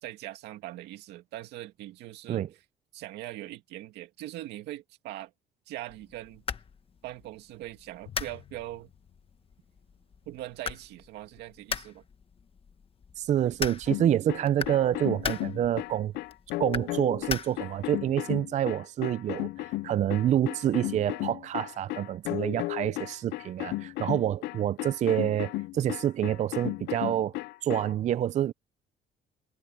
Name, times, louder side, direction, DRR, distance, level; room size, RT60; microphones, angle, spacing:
voice 1, 0.0-2.4 2.9-5.3 5.7-6.4 7.0-8.9 10.3-12.0, right 15 dB, 85° right, 2.4 m, -41 dB
sound 1, 5.9-17.9, left 6 dB, 35° left, 1.4 m, -40 dB
Drum, 8.1-10.4, left 11 dB, 60° left, 6.9 m, -54 dB
voice 2, 13.2-16.1 16.6-27.4 27.6-28.5, right 11 dB, 45° right, 0.4 m, -27 dB
sound 2, 13.9-27.9, left 19 dB, 80° left, 0.5 m, -35 dB
cardioid pair, 110°, 17 cm